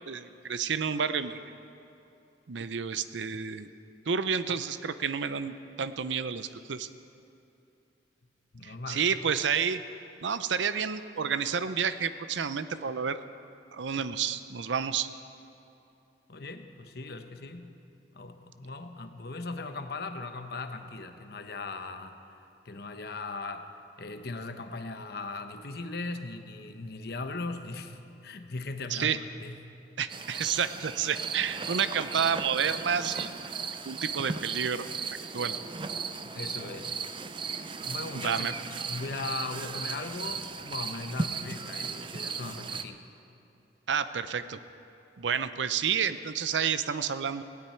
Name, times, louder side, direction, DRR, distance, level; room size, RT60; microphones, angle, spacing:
voice 1, 0.1-1.5 2.5-3.7 4.1-6.9 8.6-9.8 10.2-13.2 13.7-15.1 28.9-29.2 30.0-33.3 33.9-34.9 35.3-35.6 38.1-38.5 43.9-44.6 45.2-47.4, right 7 dB, 75° right, 12 dB, 0.6 m, -30 dB
voice 2, 8.5-9.1 16.3-17.7 18.1-22.2 22.6-23.7 24.0-29.7 36.3-36.9 37.8-38.5 38.9-43.0, left 3 dB, 55° left, 7 dB, 0.9 m, -38 dB
sound 1, 30.1-42.8, right 5 dB, 25° right, 0.5 m, -36 dB
18.5 x 16.0 x 4.5 m, 2.7 s
head